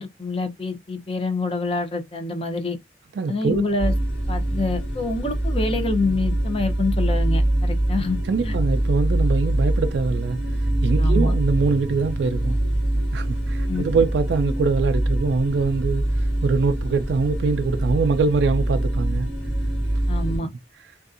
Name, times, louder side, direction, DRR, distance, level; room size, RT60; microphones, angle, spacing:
voice 1, 0.0-2.8 3.3-3.9 4.3-8.5 11.0-11.3 13.7-13.8 20.1-20.5, left 3 dB, 30° left, 0.5 m, -26 dB
voice 2, 3.2-3.6 8.3-10.4 10.8-12.6 13.1-19.3, right 4 dB, 80° right, 0.3 m, -23 dB
sound 1, 3.8-20.4, right 1 dB, 75° left, 1.3 m, -24 dB
2.6 x 2.3 x 2.4 m
head